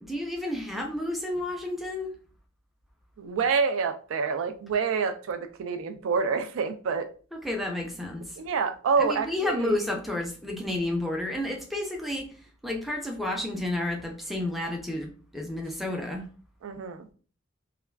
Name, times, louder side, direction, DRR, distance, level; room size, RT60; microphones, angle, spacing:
voice 1, 0.0-2.1 7.3-8.2 9.0-12.3 12.6-16.2, left 1 dB, ahead, 1 dB, 0.4 m, -31 dB
voice 2, 3.2-7.1 8.4-9.8 16.6-17.1, right 5 dB, 80° right, 8 dB, 0.4 m, -27 dB
3.3 x 2.3 x 2.2 m, 0.39 s
head